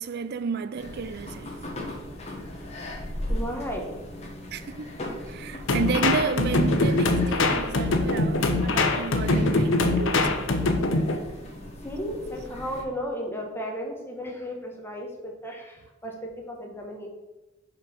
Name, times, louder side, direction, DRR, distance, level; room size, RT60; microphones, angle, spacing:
voice 1, 0.0-1.6 4.5-10.8, right 5 dB, 55° right, 0.4 m, -32 dB
sound 1, 0.8-12.8, left 1 dB, 35° left, 1.3 m, -38 dB
voice 2, 3.3-4.0 11.8-17.1, equal, 10° left, 1.2 m, -35 dB
sound 2, 5.7-11.2, left 2 dB, 75° left, 0.8 m, -23 dB
6.0 x 5.2 x 4.4 m
head